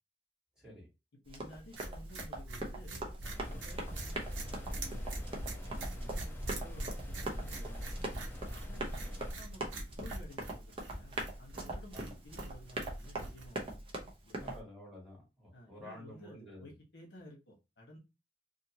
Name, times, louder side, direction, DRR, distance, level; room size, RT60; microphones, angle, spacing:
voice 1, 0.6-0.9 9.1-9.3 11.9-12.1 14.4-16.7, left 1 dB, 5° right, -5 dB, 1.7 m, -51 dB
voice 2, 1.2-3.2 3.4-7.8 8.6-13.8 14.2-14.6 15.5-18.0, equal, 65° left, -1 dB, 1.1 m, -54 dB
Run, 1.3-14.6, right 2 dB, 30° right, 0.7 m, -42 dB
sound 1, 1.8-13.7, right 2 dB, 80° right, 0.9 m, -44 dB
sound 2, 3.2-9.3, equal, 10° left, 0.6 m, -43 dB
2.7 x 2.6 x 2.8 m, 0.26 s
head